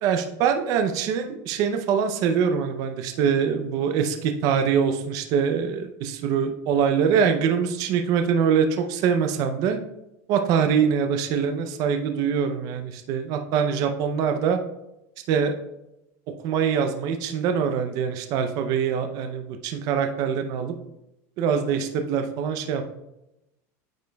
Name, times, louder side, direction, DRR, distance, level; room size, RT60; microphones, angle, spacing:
voice 1, 0.0-9.8 10.3-14.6 15.3-15.5 16.4-20.7 21.4-22.8, right 7 dB, 45° right, 6 dB, 0.5 m, -24 dB
9.1 x 5.1 x 2.3 m, 0.91 s
supercardioid pair, 150°, 8 cm